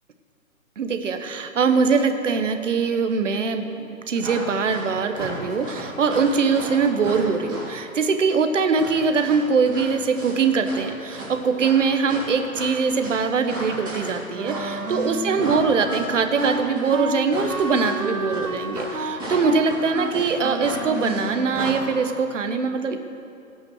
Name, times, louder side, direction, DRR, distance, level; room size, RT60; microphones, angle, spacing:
voice 1, 0.8-23.0, right 5 dB, 60° right, 7 dB, 1.2 m, -22 dB
sound 1, 4.2-4.9 5.1-7.8 8.7-10.8 11.1-21.3 21.5-21.7, right 1 dB, 10° right, 3.6 m, -35 dB
Wind instrument woodwind instrument, 14.3-21.9, right 3 dB, 80° right, 1.2 m, -31 dB
18.0 x 6.3 x 6.4 m, 2.5 s
figure-of-eight pair, 140°, 43 cm